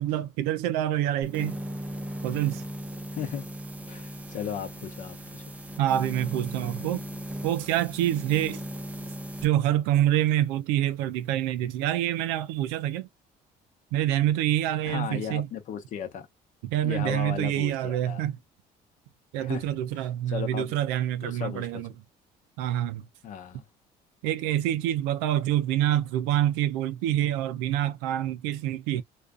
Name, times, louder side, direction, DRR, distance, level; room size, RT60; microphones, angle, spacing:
voice 1, 0.0-1.6 2.2-2.7 5.8-7.1 7.4-8.6 9.4-13.1 13.9-15.5 16.6-18.4 19.3-21.9 22.6-23.1 24.2-29.0, right 12 dB, 90° right, 0.4 m, -26 dB
sound 1, 1.2-9.5, right 1 dB, 10° right, 0.6 m, -38 dB
voice 2, 3.1-3.4 3.9-5.4 14.8-16.3 16.8-18.2 19.4-19.7 20.3-20.6 21.2-21.8 23.2-23.6, left 8 dB, 55° left, 0.9 m, -35 dB
2.5 x 2.4 x 2.3 m
cardioid pair, 100°, 16 cm